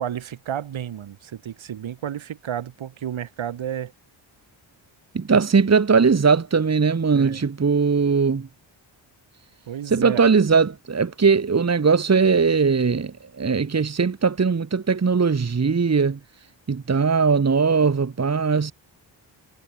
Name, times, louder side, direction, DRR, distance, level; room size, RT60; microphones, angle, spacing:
voice 1, 0.0-3.9 7.1-7.4 9.7-10.2, right 10 dB, 85° right, 5.6 m, -31 dB
voice 2, 5.1-8.5 9.9-16.2 16.7-18.7, right 5 dB, 35° right, 2.1 m, -20 dB
cardioid pair, 80°, 46 cm